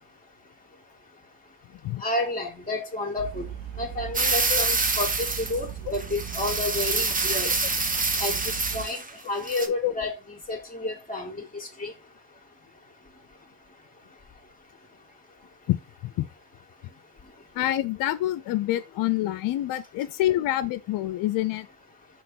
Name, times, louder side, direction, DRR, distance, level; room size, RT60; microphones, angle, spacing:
voice 1, 2.0-3.5 3.8-7.5 8.2-8.4 8.7-9.0 9.3-11.9, left 2 dB, 20° left, 1.9 m, -30 dB
sound 1, 3.2-8.9, right 10 dB, 75° right, 0.7 m, -38 dB
sound 2, 4.1-5.6 5.9-9.1 9.4-9.7, right 3 dB, 25° right, 1.1 m, -26 dB
voice 2, 17.5-21.7, left 14 dB, 70° left, 0.5 m, -27 dB
5.8 x 3.1 x 5.4 m
supercardioid pair, 65°, 35 cm